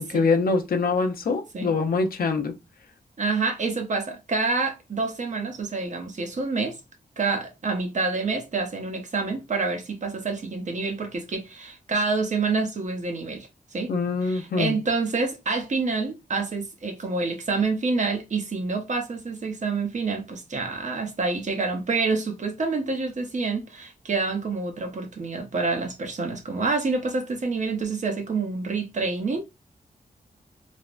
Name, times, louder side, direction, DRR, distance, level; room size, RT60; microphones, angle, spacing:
voice 1, 0.0-2.6 13.9-14.8, left 4 dB, 65° left, 0.6 m, -24 dB
voice 2, 3.2-6.8 7.2-13.9 14.2-29.4, right 4 dB, 50° right, 0.7 m, -27 dB
3.3 x 2.1 x 2.4 m
wide cardioid pair, 110°, 16 cm